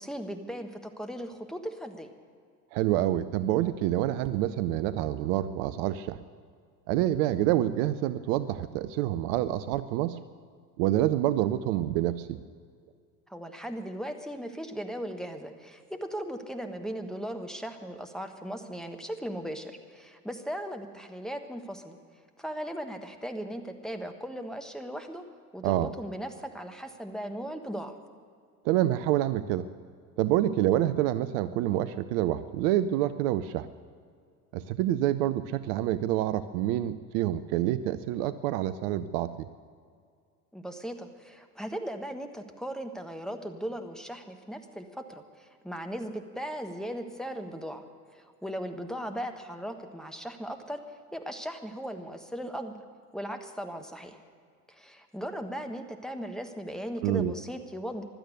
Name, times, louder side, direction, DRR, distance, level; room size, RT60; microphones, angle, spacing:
voice 1, 0.0-2.1 13.3-22.0 22.4-25.2 25.5-27.9 40.5-47.8 48.1-50.8 51.1-52.7 53.1-54.2 54.7-58.0, equal, ahead, 6 dB, 1.4 m, -37 dB
voice 2, 2.7-6.2 6.9-10.2 10.8-12.4 25.6-25.9 28.6-29.7 30.2-33.7 34.5-39.5 57.0-57.3, right 13 dB, 55° right, 14 dB, 0.6 m, -27 dB
16.0 x 12.0 x 6.6 m, 2.1 s
figure-of-eight pair, 70°, 46 cm